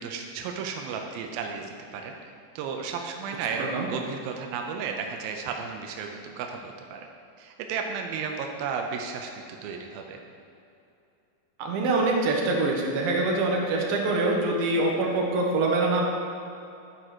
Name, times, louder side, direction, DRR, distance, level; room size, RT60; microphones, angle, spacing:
voice 1, 0.0-7.1 7.4-9.3 9.6-10.2, right 5 dB, 85° right, 3 dB, 2.1 m, -34 dB
voice 2, 3.6-3.9 11.6-16.0, right 2 dB, 65° right, -1 dB, 2.7 m, -24 dB
12.5 x 4.9 x 6.1 m, 2.7 s
omnidirectional pair, 5.0 m